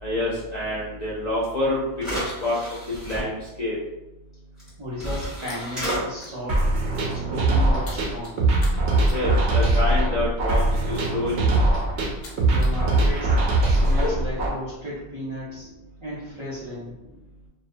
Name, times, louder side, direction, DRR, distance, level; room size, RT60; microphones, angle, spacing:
voice 1, 0.0-1.8 2.1-2.6 3.0-3.8 9.1-11.5, left 1 dB, 55° left, -7 dB, 0.5 m, -27 dB
sound 1, 1.4-1.5 1.9-3.2 4.6-4.7 5.0-6.0, equal, ahead, 1.1 m, -31 dB
sound 2, 4.6-6.4 6.8-7.0 7.3-12.8 13.1-14.1, left 5 dB, 80° left, 1.0 m, -42 dB
voice 2, 4.8-6.6 7.1-8.4 12.5-13.3 13.7-15.7 16.0-16.9, left 1 dB, 40° right, -9 dB, 0.4 m, -34 dB
sound 3, 6.5-14.5, right 2 dB, 75° right, 0.8 m, -21 dB
2.4 x 2.1 x 2.5 m, 0.95 s
omnidirectional pair, 1.2 m